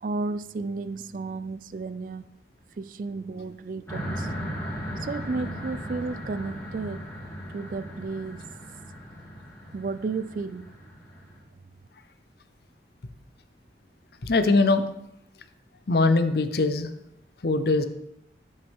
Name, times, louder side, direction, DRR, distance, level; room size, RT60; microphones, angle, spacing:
voice 1, 0.0-2.3 2.8-4.3 5.0-7.0 7.5-8.4 9.7-10.7, right 3 dB, 50° right, 0.3 m, -33 dB
sound 1, 3.9-11.4, equal, 15° left, 2.7 m, -37 dB
voice 2, 14.2-14.8 15.9-16.9 17.4-17.8, left 3 dB, 60° left, 0.7 m, -21 dB
11.0 x 8.0 x 3.6 m
head